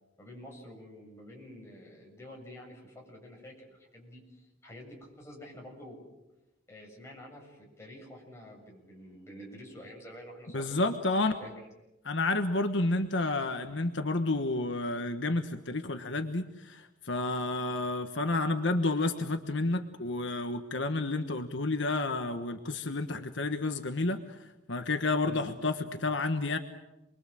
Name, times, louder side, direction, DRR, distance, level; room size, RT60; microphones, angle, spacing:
voice 1, 0.2-6.0 6.7-10.9 11.2-11.5 25.2-25.5, left 1 dB, 15° left, -1 dB, 7.4 m, -48 dB
voice 2, 10.5-11.3 12.0-24.2 24.7-26.6, left 2 dB, 70° left, 7 dB, 1.4 m, -30 dB
28.5 x 22.0 x 7.6 m, 0.97 s
head